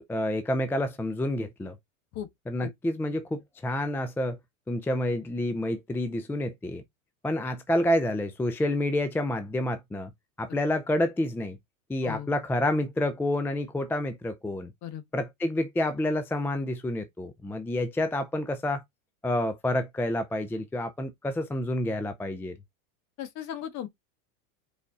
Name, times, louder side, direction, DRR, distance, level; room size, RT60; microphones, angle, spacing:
voice 1, 0.1-1.8 2.5-4.4 4.7-6.8 7.2-10.1 10.4-11.6 11.9-14.7 15.1-18.8 19.2-22.6, left 1 dB, 5° left, 0.5 m, -28 dB
voice 2, 23.2-23.9, left 10 dB, 40° left, 1.6 m, -36 dB
5.1 x 4.9 x 4.1 m
supercardioid pair, 125°, 43 cm